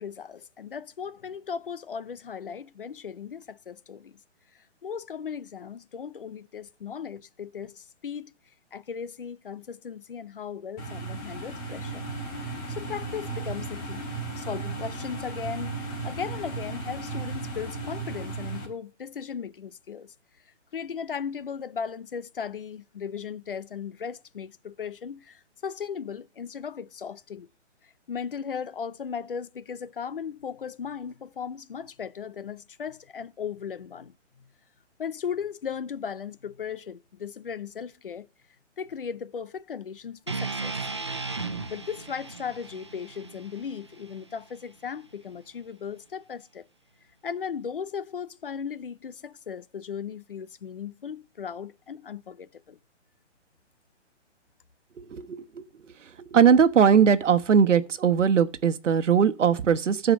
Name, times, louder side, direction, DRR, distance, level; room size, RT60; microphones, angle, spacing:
voice 1, 0.0-4.2 4.8-8.3 8.7-12.0 12.5-14.1 14.4-20.1 20.7-27.5 28.1-34.1 35.0-38.3 38.8-40.8 41.7-46.6 47.2-52.8, left 7 dB, 50° left, 0.6 m, -37 dB
sound 1, 10.8-18.7, right 3 dB, 10° left, 1.6 m, -35 dB
sound 2, 40.3-44.4, right 3 dB, 25° right, 0.5 m, -36 dB
voice 2, 55.0-55.6 56.3-60.1, right 7 dB, 80° right, 1.2 m, -20 dB
14.5 x 5.0 x 6.3 m
hypercardioid pair, 175°, 36 cm